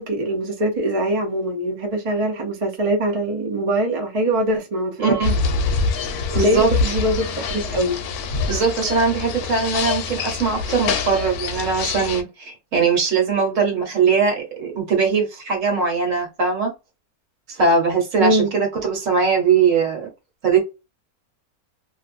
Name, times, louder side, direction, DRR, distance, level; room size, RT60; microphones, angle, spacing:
voice 1, 0.0-5.2 6.3-8.0 18.2-18.5, right 1 dB, 35° right, 0.5 m, -23 dB
voice 2, 5.0-5.3 6.3-6.9 8.5-16.7 17.5-20.1 20.4-20.6, right 5 dB, 60° right, 1.3 m, -20 dB
sound 1, 5.2-12.2, left 4 dB, 80° left, 1.0 m, -25 dB
2.5 x 2.4 x 2.4 m
omnidirectional pair, 1.6 m